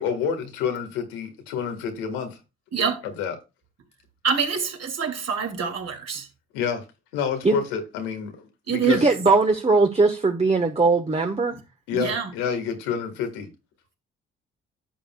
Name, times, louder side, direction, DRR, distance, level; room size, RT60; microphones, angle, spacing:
voice 1, 0.0-2.4 3.2-3.4 6.5-6.8 7.1-9.1 11.9-13.5, left 7 dB, 85° left, 1.8 m, -28 dB
voice 2, 2.7-3.1 4.2-6.3 8.7-9.1 11.9-12.3, right 6 dB, 55° right, 2.6 m, -26 dB
voice 3, 8.8-11.6, right 3 dB, 20° right, 1.2 m, -20 dB
11.5 x 7.0 x 2.3 m
hypercardioid pair, 50°, 30 cm